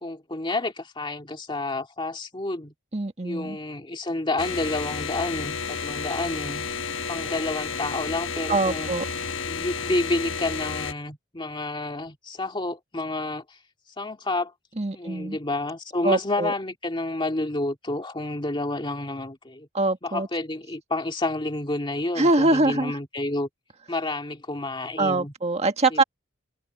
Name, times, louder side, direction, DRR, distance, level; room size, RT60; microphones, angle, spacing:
voice 1, 0.0-2.7 3.2-6.7 7.1-8.9 9.5-13.6 14.0-14.5 14.9-19.7 20.0-23.5 23.9-25.3 25.9-26.0, left 2 dB, 25° left, 2.3 m, -29 dB
voice 2, 2.9-3.6 8.5-9.0 14.8-15.4 16.0-16.5 19.7-20.3 22.1-23.0 25.0-26.0, right 2 dB, 35° right, 1.7 m, -23 dB
sound 1, 4.4-10.9, left 5 dB, 70° left, 1.3 m, -31 dB
head